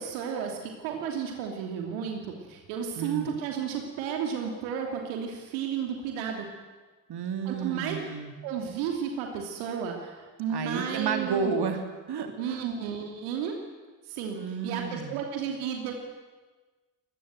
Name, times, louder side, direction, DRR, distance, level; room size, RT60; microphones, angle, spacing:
voice 1, 0.0-2.2 2.5-6.5 7.5-7.9 8.4-11.5 12.4-13.5 14.1-14.4 14.6-15.9, right 7 dB, 70° right, 2 dB, 2.9 m, -32 dB
voice 2, 3.0-3.3 7.1-8.3 10.5-12.7 14.3-15.2, right 6 dB, 50° right, 5 dB, 3.1 m, -32 dB
23.5 x 20.5 x 7.8 m, 1.3 s
figure-of-eight pair, 45°, 50 cm